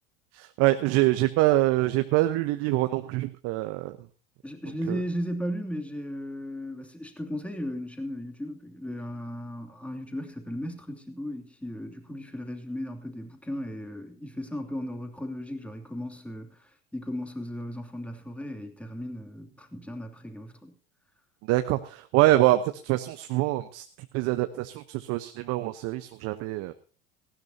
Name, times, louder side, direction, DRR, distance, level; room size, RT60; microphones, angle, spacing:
voice 1, 0.3-4.0 4.9-5.0 21.5-23.8 24.1-26.7, right 16 dB, 55° right, 9 dB, 1.0 m, -25 dB
voice 2, 4.4-20.7, equal, 5° left, 4 dB, 2.9 m, -36 dB
18.5 x 16.0 x 2.8 m, 0.38 s
hypercardioid pair, 75°, 29 cm